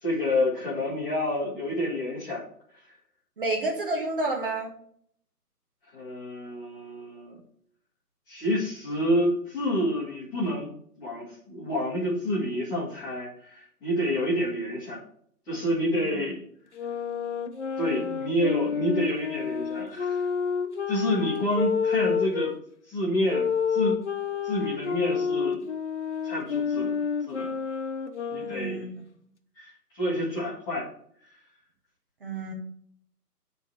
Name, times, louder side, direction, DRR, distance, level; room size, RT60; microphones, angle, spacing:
voice 1, 0.0-2.4 2.8-2.9 5.9-7.4 8.3-10.7 11.0-15.0 15.5-16.4 17.8-20.3 20.9-22.5 22.9-24.0 24.4-25.6 26.2-27.0 27.2-27.6 28.3-28.8 29.5-30.9, equal, 10° left, -9 dB, 1.7 m, -28 dB
voice 2, 3.4-4.7 16.1-16.2 28.4-28.9 32.2-32.5, right 2 dB, 35° right, 1 dB, 1.9 m, -30 dB
sound 1, 16.7-22.5 23.3-28.9, left 6 dB, 45° left, 0.9 m, -29 dB
9.8 x 4.1 x 6.6 m, 0.63 s
figure-of-eight pair, 150°, 48 cm